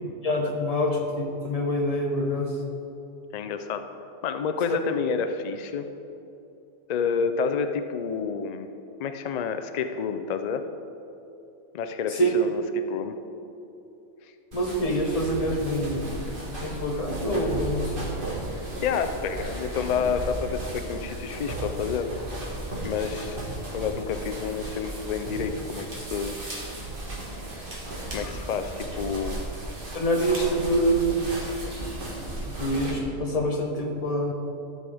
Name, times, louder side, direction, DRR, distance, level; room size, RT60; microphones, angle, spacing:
voice 1, 0.0-2.6 12.1-12.3 14.5-16.2 16.6-18.0 29.9-31.2 32.5-34.3, equal, 35° left, 2 dB, 1.0 m, -26 dB
voice 2, 3.3-3.8 4.2-5.9 6.9-8.7 9.0-10.6 11.7-13.2 14.2-14.3 18.8-22.1 22.8-23.4 23.7-26.4 28.1-29.5, left 6 dB, 80° left, 8 dB, 0.3 m, -29 dB
sound 1, 14.5-33.0, right 1 dB, 45° right, 1.6 m, -35 dB
13.0 x 7.0 x 3.4 m, 2.9 s
omnidirectional pair, 1.3 m